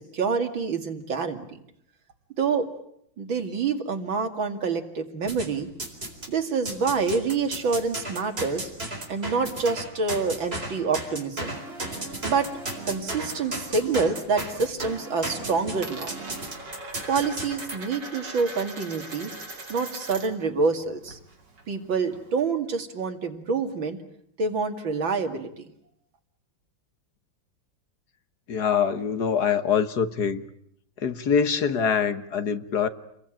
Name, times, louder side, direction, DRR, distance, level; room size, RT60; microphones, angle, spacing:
voice 1, 0.0-1.6 2.4-2.7 3.2-5.7 6.3-8.7 9.1-11.6 12.2-12.5 12.9-16.1 17.1-19.3 19.7-21.2 21.7-24.0 24.4-25.5, right 4 dB, 90° right, 3.1 m, -27 dB
sound 1, 5.3-6.3 6.7-17.7, right 1 dB, 30° right, 4.6 m, -35 dB
Coin (dropping), 13.0-14.1 14.4-14.9 15.2-20.5 20.8-22.5, right 2 dB, 65° right, 4.1 m, -40 dB
voice 2, 28.5-30.5 31.0-32.9, left 7 dB, 60° left, 1.8 m, -24 dB
29.5 x 22.0 x 9.1 m
omnidirectional pair, 2.1 m